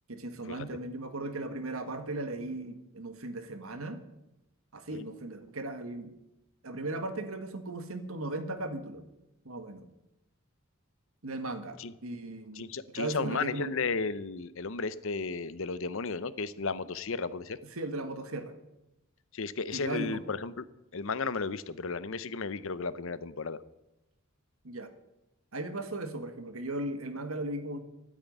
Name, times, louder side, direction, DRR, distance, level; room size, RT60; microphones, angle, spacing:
voice 1, 0.1-4.0 4.7-6.1 6.6-9.0 9.4-9.9 11.2-13.7 17.7-18.5 19.7-20.2 24.6-24.9 25.5-27.8, right 2 dB, 80° right, 8 dB, 1.7 m, -37 dB
voice 2, 12.6-17.6 19.3-20.7 20.9-23.6, left 4 dB, 65° left, 16 dB, 0.8 m, -34 dB
13.5 x 8.3 x 9.3 m, 0.93 s
head